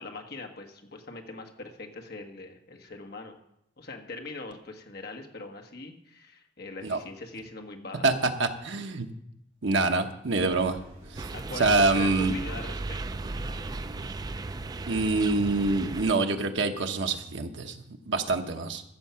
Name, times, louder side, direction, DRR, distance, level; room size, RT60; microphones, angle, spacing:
voice 1, 0.0-3.4 3.8-8.1 11.3-13.2, left 3 dB, 55° left, 3 dB, 1.4 m, -41 dB
voice 2, 8.4-9.1 9.6-10.8 11.1-11.3 11.6-12.3 14.9-18.8, right 3 dB, 75° right, 5 dB, 1.1 m, -26 dB
sound 1, 10.3-15.4, equal, 40° right, 5.8 m, -49 dB
sound 2, 11.2-16.1, right 3 dB, 20° right, 0.3 m, -36 dB
14.5 x 7.3 x 5.7 m, 0.80 s
head